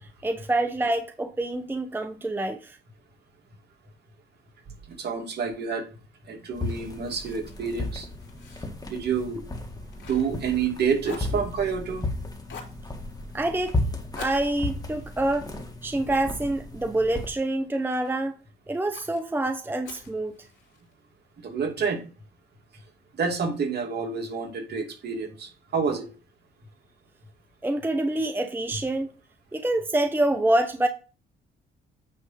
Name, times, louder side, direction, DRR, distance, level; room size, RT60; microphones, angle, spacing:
voice 1, 0.2-2.8 13.3-13.7 14.2-15.5 15.8-18.4 18.7-20.4 27.6-29.1 29.5-30.9, right 1 dB, 10° right, 0.8 m, -26 dB
voice 2, 4.9-5.9 6.3-8.1 8.9-9.4 10.1-12.1 21.4-22.0 23.2-26.1, right 6 dB, 55° right, 2.6 m, -28 dB
sound 1, 6.5-17.3, left 2 dB, 20° left, 2.1 m, -34 dB
Fire, 7.0-10.7 11.0-12.1 12.5-12.8 14.1-16.6 17.1-18.2 18.9-19.2 19.8-20.9, left 5 dB, 70° left, 3.1 m, -47 dB
9.3 x 3.5 x 5.7 m
cardioid pair, 90°, 20 cm